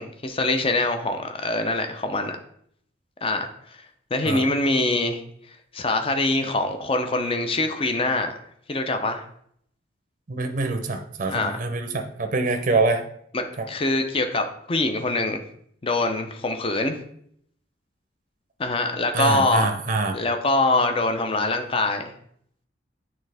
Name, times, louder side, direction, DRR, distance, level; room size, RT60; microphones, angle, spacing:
voice 1, 0.0-2.4 3.2-3.5 4.1-5.2 5.7-8.3 8.7-9.2 11.3-11.6 13.3-15.4 15.8-17.0 18.6-19.7 20.1-22.1, left 2 dB, 30° left, 6 dB, 0.6 m, -24 dB
voice 2, 10.3-13.0 13.6-13.7 19.1-20.2, right 3 dB, 40° right, 6 dB, 0.6 m, -25 dB
8.8 x 3.5 x 3.3 m, 0.68 s
head